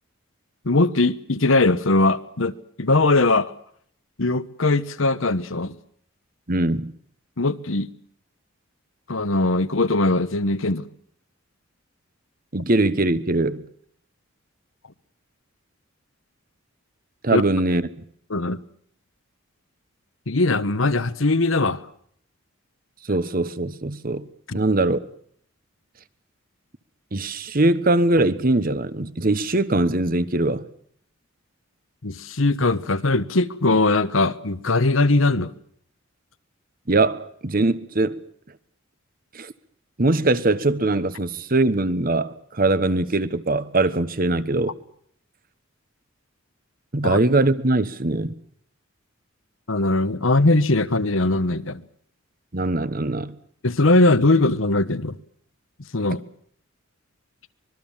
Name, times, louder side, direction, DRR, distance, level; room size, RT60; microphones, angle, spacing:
voice 1, 0.6-3.5 4.2-5.7 7.4-7.9 9.1-10.9 17.3-17.4 18.3-18.6 20.3-21.8 32.0-35.5 47.0-47.2 49.7-51.8 53.6-55.2 55.9-56.2, left 2 dB, 70° left, 1.2 m, -20 dB
voice 2, 6.5-6.9 12.5-13.6 17.2-17.9 23.1-24.3 24.5-25.0 27.1-30.6 36.9-38.2 39.3-39.5 40.0-44.7 46.9-48.3 52.5-53.3, right 2 dB, 45° right, 1.2 m, -21 dB
25.0 x 21.5 x 7.4 m
head